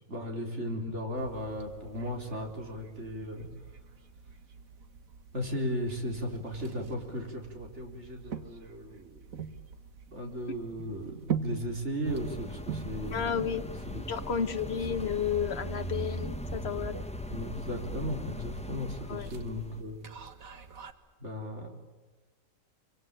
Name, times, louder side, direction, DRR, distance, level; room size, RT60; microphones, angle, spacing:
voice 1, 0.1-3.5 5.3-9.3 10.1-13.5 13.9-14.0 17.3-20.1 21.2-21.7, equal, 55° right, 2 dB, 4.4 m, -36 dB
sound 1, 1.2-20.9, right 7 dB, 80° right, 2.0 m, -44 dB
sound 2, 12.0-19.8, equal, 5° left, 1.2 m, -39 dB
voice 2, 13.1-13.7 14.1-17.0 19.1-19.3, left 7 dB, 50° left, 10 dB, 1.4 m, -32 dB
25.5 x 25.0 x 8.8 m, 1.3 s
omnidirectional pair, 1.4 m